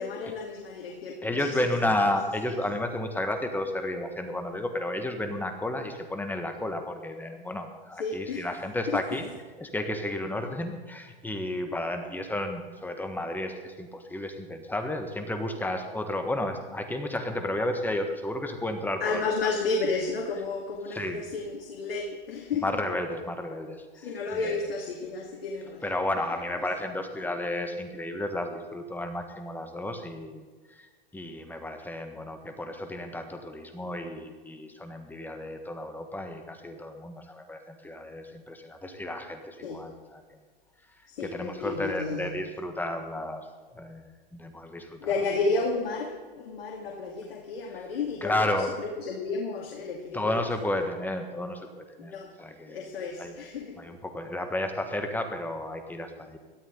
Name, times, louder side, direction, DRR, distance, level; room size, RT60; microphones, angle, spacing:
voice 1, 0.0-1.9 2.4-2.5 8.0-8.5 8.9-9.0 11.6-11.7 19.0-22.6 24.0-26.0 39.6-39.8 41.1-42.2 45.0-48.6 49.0-50.4 52.0-52.3 52.7-53.8, left 4 dB, 80° left, -1 dB, 2.5 m, -32 dB
voice 2, 1.2-9.3 9.6-19.2 20.9-21.2 22.6-24.6 25.8-30.9 31.1-40.4 41.2-43.5 43.7-44.0 44.3-45.1 48.2-48.7 50.1-52.1 52.4-52.9 53.2-53.3 53.8-56.4, left 1 dB, 5° left, 5 dB, 1.6 m, -32 dB
17.5 x 13.0 x 3.9 m, 1.4 s
hypercardioid pair, 120°, 30 cm